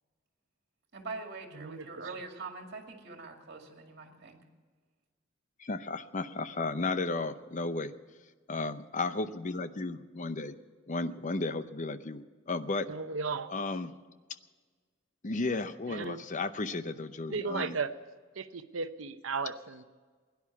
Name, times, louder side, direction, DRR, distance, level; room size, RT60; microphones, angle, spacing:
voice 1, 0.9-4.4, right 3 dB, 55° right, 3 dB, 2.3 m, -43 dB
voice 2, 1.6-2.1 12.9-13.5 15.9-16.2 17.3-17.9 18.4-19.8, right 4 dB, 75° right, 10 dB, 0.8 m, -35 dB
voice 3, 5.6-7.9 8.5-10.5 10.9-12.9 13.5-13.9 15.2-17.8, left 3 dB, 40° left, 12 dB, 0.7 m, -34 dB
16.5 x 10.5 x 7.2 m, 1.5 s
head